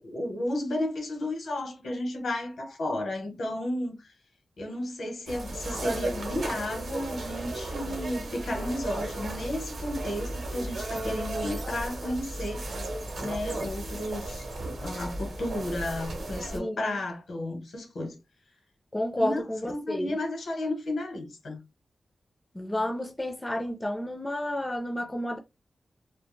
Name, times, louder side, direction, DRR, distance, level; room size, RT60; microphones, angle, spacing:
voice 1, 0.0-4.1 4.6-12.7 13.2-18.2 19.2-21.6, left 1 dB, 80° left, 0.9 m, -33 dB
sound 1, 5.3-16.6, right 2 dB, 65° right, 0.7 m, -35 dB
voice 2, 16.5-17.0 18.9-20.1 22.5-25.4, left 1 dB, 15° left, 0.4 m, -31 dB
2.3 x 2.1 x 3.1 m
wide cardioid pair, 165°, 0 cm